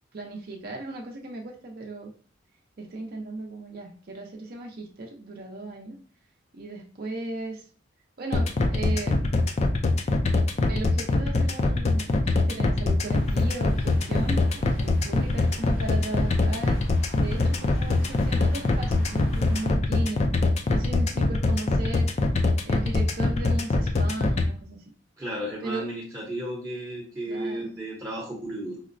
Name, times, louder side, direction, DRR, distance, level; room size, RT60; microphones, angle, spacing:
voice 1, 0.1-2.1 2.8-6.0 6.5-7.7 8.2-9.2 10.7-16.9 17.1-20.3 20.7-22.1 22.6-24.8 25.6-25.9 27.3-27.7, right 2 dB, 50° right, 0 dB, 0.5 m, -36 dB
sound 1, 8.3-24.4, left 2 dB, 35° left, 0.3 m, -23 dB
sound 2, 13.0-19.7, equal, 85° left, 0.9 m, -40 dB
voice 2, 25.2-28.8, right 1 dB, 15° right, -4 dB, 0.7 m, -34 dB
4.7 x 2.0 x 2.5 m, 0.41 s
head